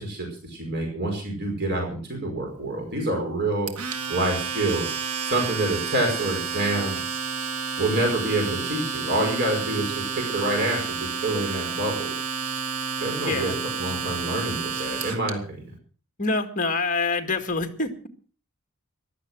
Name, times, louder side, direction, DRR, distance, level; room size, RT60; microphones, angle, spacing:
voice 1, 0.0-3.7 4.1-7.0 7.8-12.1 13.0-15.7, right 1 dB, 50° right, 1 dB, 5.2 m, -27 dB
Domestic sounds home sounds, 3.7-15.3, right 6 dB, 80° right, 2.0 m, -30 dB
voice 2, 13.2-13.6 16.2-18.1, left 3 dB, 35° left, 7 dB, 2.1 m, -26 dB
15.5 x 12.0 x 6.2 m, 0.40 s
head